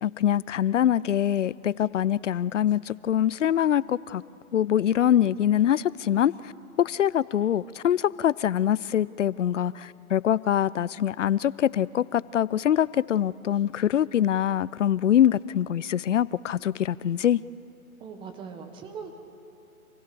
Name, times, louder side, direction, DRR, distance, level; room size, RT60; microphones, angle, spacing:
voice 1, 0.0-4.2 4.5-6.5 6.8-17.4, left 10 dB, 55° left, 21 dB, 0.5 m, -24 dB
voice 2, 18.0-19.1, right 6 dB, 10° right, 5 dB, 1.2 m, -40 dB
27.0 x 16.5 x 6.9 m, 2.7 s
hypercardioid pair, 145°, 44 cm